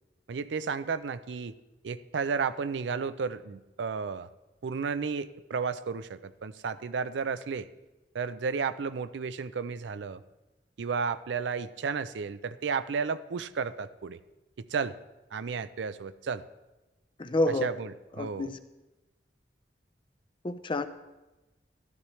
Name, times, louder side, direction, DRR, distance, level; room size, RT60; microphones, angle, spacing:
voice 1, 0.3-1.6 1.8-4.3 4.6-7.7 8.1-10.2 10.8-14.2 14.6-15.0 15.3-16.4 17.6-17.9 18.2-18.5, right 5 dB, 80° right, 14 dB, 0.4 m, -33 dB
voice 2, 17.2-17.7 18.2-18.6 20.4-20.9, left 1 dB, 30° left, 10 dB, 0.5 m, -28 dB
13.0 x 12.0 x 3.2 m, 1.1 s
head